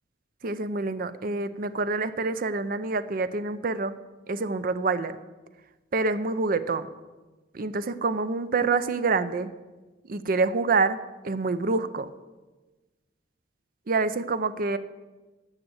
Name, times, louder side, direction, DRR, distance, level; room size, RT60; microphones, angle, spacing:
voice 1, 0.4-3.9 4.3-5.2 5.9-6.9 7.5-9.5 10.1-11.0 11.2-12.1 13.9-14.8, right 3 dB, 50° right, 13 dB, 0.5 m, -26 dB
9.8 x 6.6 x 8.0 m, 1.2 s
head